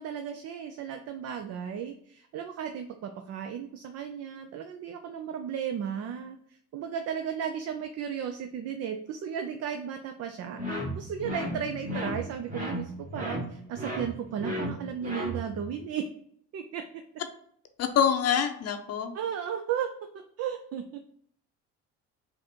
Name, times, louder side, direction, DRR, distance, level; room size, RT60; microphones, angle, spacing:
voice 1, 0.0-16.1 16.5-16.8 19.1-19.9 20.1-21.0, right 8 dB, 50° right, 6 dB, 0.5 m, -35 dB
sound 1, 10.6-15.7, equal, 25° right, 1.3 m, -35 dB
voice 2, 17.8-19.1, left 8 dB, 50° left, 7 dB, 0.7 m, -25 dB
4.1 x 2.6 x 4.3 m, 0.65 s
supercardioid pair, 90°, 32 cm